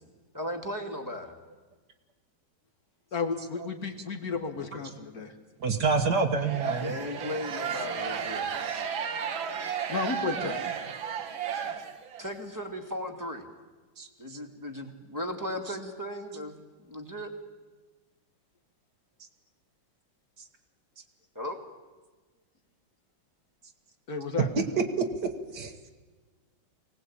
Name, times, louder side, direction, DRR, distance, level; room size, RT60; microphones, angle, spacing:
voice 1, 0.3-1.4 6.8-8.5 11.5-11.6 12.2-13.4 14.2-16.6 16.8-17.3 21.4-21.6, left 1 dB, 10° right, 4 dB, 2.0 m, -36 dB
voice 2, 3.1-5.3 9.9-10.5 24.1-24.5, left 4 dB, 50° left, 4 dB, 2.0 m, -32 dB
voice 3, 5.6-6.9 10.4-10.5 14.0-14.1 24.6-24.8 25.5-25.9, right 4 dB, 55° right, 6 dB, 1.9 m, -27 dB
sound 1, 6.4-12.3, right 7 dB, 80° right, 2.1 m, -33 dB
24.0 x 18.5 x 8.7 m, 1.3 s
omnidirectional pair, 2.2 m